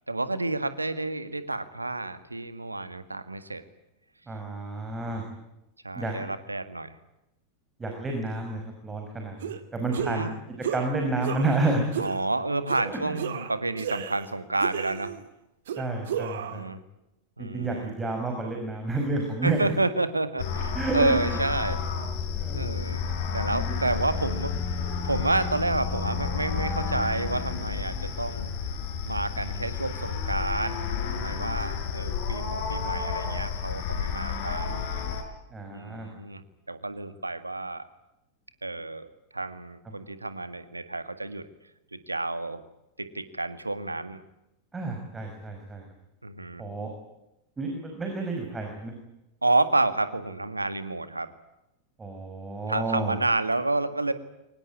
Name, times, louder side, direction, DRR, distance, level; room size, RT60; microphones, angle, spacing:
voice 1, 0.1-3.6 5.8-7.0 9.9-10.4 12.0-15.2 16.4-16.8 17.4-17.9 19.4-21.8 22.5-23.1 23.3-24.6 25.0-28.5 29.1-30.8 31.1-34.9 35.7-37.8 38.6-39.1 39.3-41.4 41.9-42.6 43.0-44.2 46.2-46.6 49.4-51.3 52.7-54.1, right 2 dB, 80° right, 11 dB, 1.8 m, -29 dB
voice 2, 4.3-5.2 5.9-6.1 7.8-10.3 10.7-11.9 12.8-13.2 15.8-16.6 17.4-19.7 20.7-21.4 22.3-22.8 23.7-23.8 29.3-29.7 35.5-36.1 44.7-45.8 46.6-46.9 47.6-48.9 52.0-53.2, right 2 dB, 15° right, 3 dB, 5.4 m, -30 dB
sound 1, 9.4-9.6 9.9-10.3 10.6-10.9 11.2-11.6 11.9-12.2 12.7-12.8 13.1-14.3 14.6-15.2 15.7-16.6, right 8 dB, 60° right, 2.3 m, -33 dB
sound 2, 20.4-35.2, left 6 dB, 50° left, 4.9 m, -31 dB
24.0 x 19.5 x 9.5 m, 0.91 s
figure-of-eight pair, 90°, 0 cm